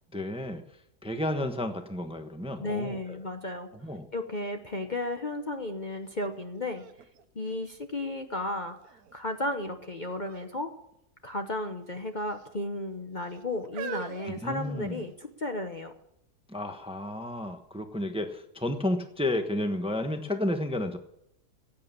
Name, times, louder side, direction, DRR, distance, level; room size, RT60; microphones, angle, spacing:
voice 1, 0.1-0.6 1.0-3.2 3.8-4.0 14.3-15.0 16.5-21.0, left 1 dB, 5° right, 6 dB, 1.0 m, -32 dB
voice 2, 2.6-3.7 4.1-6.8 7.3-8.8 9.1-10.7 11.2-15.9, left 1 dB, 35° left, 5 dB, 1.1 m, -34 dB
sound 1, 6.2-6.3 6.7-8.2 8.8-9.3 10.2-10.5 10.8-11.0 11.8-12.5 13.2-15.2 16.0-16.1, right 8 dB, 75° right, 1.4 m, -44 dB
16.5 x 8.8 x 7.3 m, 0.78 s
omnidirectional pair, 1.6 m